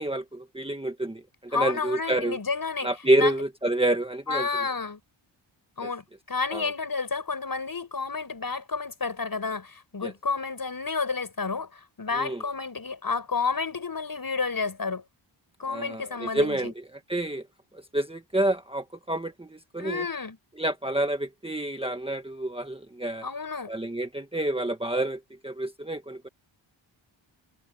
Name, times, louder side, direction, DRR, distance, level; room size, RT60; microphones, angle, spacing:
voice 1, 0.0-2.4 2.8-4.5 5.8-5.9 6.5-6.7 10.0-10.1 12.1-12.4 15.7-17.4 17.7-20.0 20.6-23.2 23.7-26.3, right 1 dB, 10° right, 1.4 m, -28 dB
voice 2, 1.5-2.9 3.2-3.3 4.3-5.0 5.8-6.0 6.3-15.0 15.6-16.7 19.8-20.4 23.2-23.7, left 4 dB, 45° left, 7.0 m, -30 dB
wide cardioid pair, 125°, 47 cm